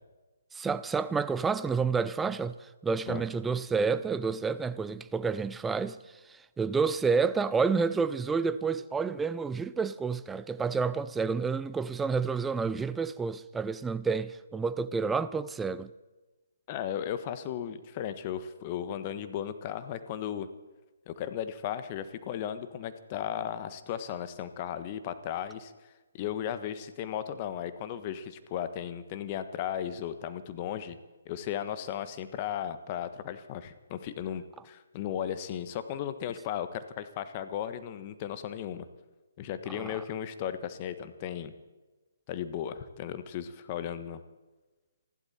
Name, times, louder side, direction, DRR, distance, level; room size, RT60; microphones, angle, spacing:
voice 1, 0.5-6.0 6.3-15.9 39.7-39.9, right 5 dB, 10° right, 0.6 m, -29 dB
voice 2, 16.7-20.5 21.1-25.7 26.1-31.0 31.2-38.9 39.4-41.5 42.3-44.2, left 10 dB, 35° left, 1.3 m, -35 dB
28.5 x 12.0 x 4.3 m
figure-of-eight pair, 135°, 0 cm